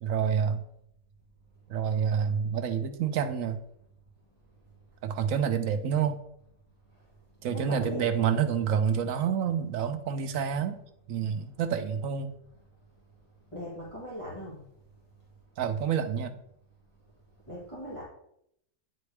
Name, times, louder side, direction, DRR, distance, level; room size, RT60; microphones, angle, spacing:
voice 1, 0.0-0.6 1.7-3.6 5.0-6.2 7.4-10.8 11.1-12.3 15.6-16.3, right 7 dB, 75° right, 8 dB, 1.0 m, -28 dB
voice 2, 7.5-8.1 13.5-14.6 17.5-18.0, equal, 20° left, -8 dB, 2.0 m, -38 dB
9.3 x 4.4 x 3.4 m, 0.74 s
omnidirectional pair, 1.5 m